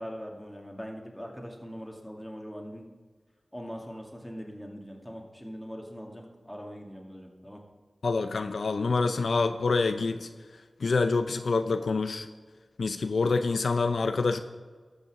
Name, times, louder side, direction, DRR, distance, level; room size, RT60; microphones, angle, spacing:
voice 1, 0.0-2.8 3.5-7.6, equal, 5° left, 0 dB, 2.3 m, -41 dB
voice 2, 8.0-10.3 10.8-12.3 12.8-14.4, left 4 dB, 80° left, 9 dB, 0.5 m, -26 dB
13.5 x 5.6 x 6.4 m, 1.5 s
cardioid pair, 45°, 0 cm